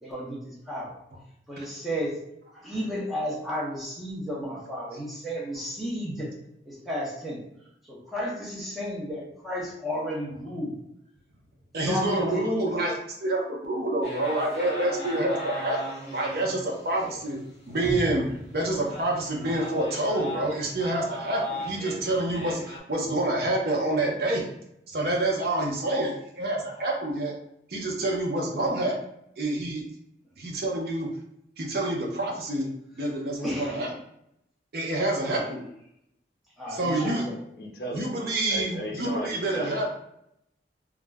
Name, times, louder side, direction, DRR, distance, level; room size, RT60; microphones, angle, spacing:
voice 1, 0.0-1.0 1.5-2.2 2.5-6.3 6.7-7.4 7.8-10.8 11.8-12.5 17.0-17.2 33.4-33.8 35.2-35.5 36.6-37.4, equal, ahead, -5 dB, 0.6 m, -33 dB
voice 2, 11.7-15.8 16.1-17.4 17.7-18.2 18.5-24.5 24.9-27.3 27.7-28.9 29.4-29.8 30.4-31.1 31.6-32.7 33.0-33.9 34.7-35.7 36.7-37.2 37.9-39.9, right 1 dB, 60° right, -1 dB, 0.6 m, -27 dB
sound 1, 14.0-17.2 17.7-17.8 18.3-18.4 18.8-22.8, equal, 40° left, 0.9 m, -38 dB
sound 2, 17.8-20.0 20.3-20.4, right 1 dB, 30° right, 0.9 m, -38 dB
voice 3, 37.6-38.1 38.5-39.8, right 1 dB, 60° left, 0 dB, 0.5 m, -34 dB
2.3 x 2.1 x 3.3 m, 0.77 s
head